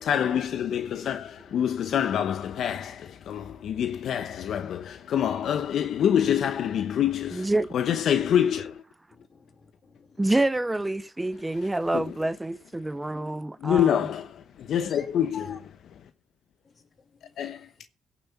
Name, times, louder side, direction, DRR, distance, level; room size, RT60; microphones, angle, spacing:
voice 1, 0.0-8.8 11.9-12.1 13.6-15.6 17.4-17.8, left 9 dB, 70° left, 0.9 m, -26 dB
voice 2, 7.3-7.7 10.2-13.9, right 2 dB, 15° right, 0.6 m, -27 dB
voice 3, 9.1-10.3 14.9-15.1 15.3-15.6 16.6-17.3, left 5 dB, 45° left, 2.9 m, -48 dB
17.0 x 7.1 x 5.7 m
cardioid pair, 90°, 0 cm